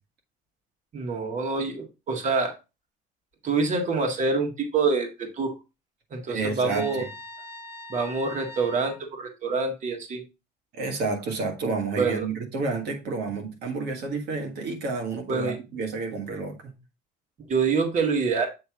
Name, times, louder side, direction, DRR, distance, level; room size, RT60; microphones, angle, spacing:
voice 1, 0.9-2.5 3.4-5.5 6.1-7.0 7.9-10.2 12.0-12.3 15.3-15.6 17.5-18.5, right 4 dB, 45° right, 1.7 m, -26 dB
voice 2, 6.3-7.1 10.7-16.7, right 3 dB, 75° right, 1.6 m, -30 dB
Trumpet, 6.7-9.0, left 2 dB, 15° right, 1.8 m, -42 dB
7.9 x 3.2 x 4.6 m
cardioid pair, 110°, 17 cm